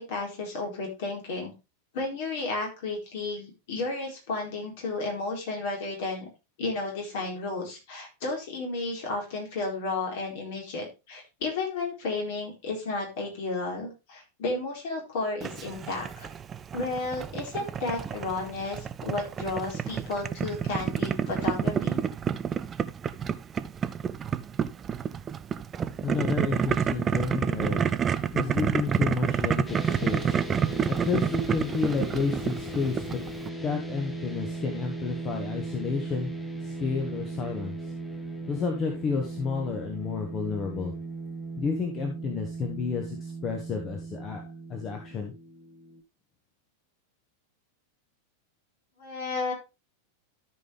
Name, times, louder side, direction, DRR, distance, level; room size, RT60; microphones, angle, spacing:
voice 1, 0.0-1.5 1.9-6.3 6.6-16.3 16.7-22.0 49.0-49.5, left 3 dB, 50° left, 0 dB, 4.2 m, -33 dB
Boiling, 15.4-33.5, right 7 dB, 25° right, 0.5 m, -29 dB
voice 2, 26.0-28.0 28.3-30.4 30.9-36.3 36.6-37.8 38.5-40.9 41.6-44.4 44.7-45.3, left 5 dB, 30° left, 3 dB, 1.6 m, -31 dB
sound 1, 29.7-46.0, right 2 dB, 5° left, 1.3 m, -37 dB
13.5 x 5.5 x 3.4 m, 0.27 s
figure-of-eight pair, 90°, 0 cm